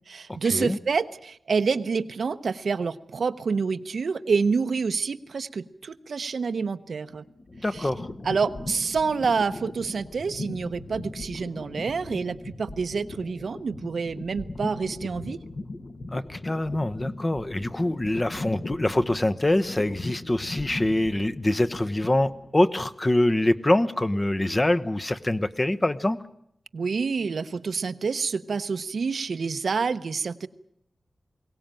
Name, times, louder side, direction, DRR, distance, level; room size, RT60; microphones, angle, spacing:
voice 1, 0.1-7.2 7.7-7.9 8.2-15.4 26.7-30.5, right 5 dB, 80° right, 11 dB, 0.8 m, -27 dB
sound 1, 7.1-22.6, left 2 dB, 55° left, 1.7 m, -39 dB
voice 2, 7.6-8.1 16.1-26.2, left 1 dB, 25° left, 13 dB, 0.9 m, -24 dB
22.5 x 18.0 x 9.0 m, 0.73 s
wide cardioid pair, 85°, 0 cm